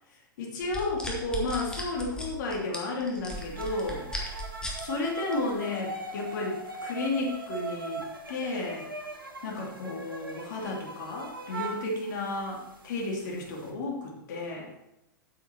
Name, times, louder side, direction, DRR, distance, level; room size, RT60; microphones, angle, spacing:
voice 1, 0.4-4.1 4.8-8.9 9.4-14.7, left 2 dB, 60° left, -1 dB, 2.9 m, -32 dB
sound 1, 0.6-4.8 5.3-5.6, left 1 dB, 5° left, 2.0 m, -36 dB
sound 2, 3.5-12.9 13.2-13.7, right 3 dB, 80° right, 1.6 m, -40 dB
8.5 x 7.5 x 4.4 m, 0.90 s
figure-of-eight pair, 95°, 11 cm